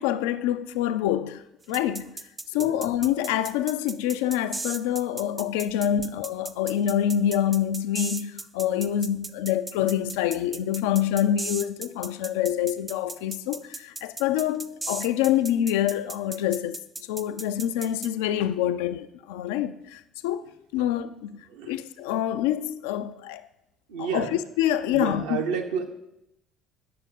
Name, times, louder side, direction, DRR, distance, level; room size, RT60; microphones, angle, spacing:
voice 1, 0.0-1.4 1.7-2.1 2.5-16.8 17.1-21.4 21.7-23.4 24.0-24.3 24.6-25.4, left 11 dB, 65° left, 0.3 m, -26 dB
sound 1, 1.7-18.1, right 2 dB, 20° right, 0.4 m, -36 dB
voice 2, 21.5-21.8 23.9-24.3 24.9-25.9, right 6 dB, 65° right, 0.9 m, -30 dB
8.5 x 6.4 x 3.8 m
figure-of-eight pair, 55°, 0 cm